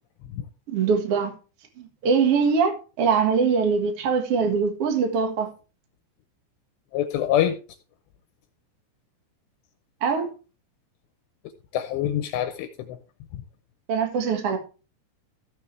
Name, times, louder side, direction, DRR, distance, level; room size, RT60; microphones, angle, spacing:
voice 1, 0.7-1.3 1.8-5.5 10.0-10.3 13.9-14.6, right 5 dB, 65° right, 1.4 m, -22 dB
voice 2, 6.9-7.6 11.7-13.0 13.3-13.4, left 11 dB, 80° left, 2.7 m, -25 dB
15.0 x 7.5 x 3.3 m
omnidirectional pair, 5.4 m